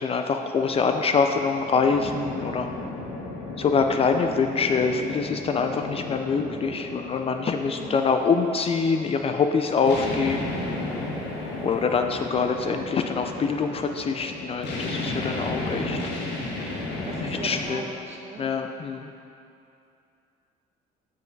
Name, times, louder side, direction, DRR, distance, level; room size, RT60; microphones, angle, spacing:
voice 1, 0.0-2.7 3.6-10.4 11.6-16.0 17.2-17.8 18.4-19.1, left 5 dB, 35° left, 6 dB, 0.4 m, -25 dB
sound 1, 0.6-17.6, left 2 dB, 80° left, 1.4 m, -34 dB
voice 2, 7.6-8.0 17.0-18.5, right 3 dB, 40° right, 0 dB, 1.2 m, -40 dB
7.7 x 5.7 x 4.6 m, 2.6 s
cardioid pair, 110°, 17 cm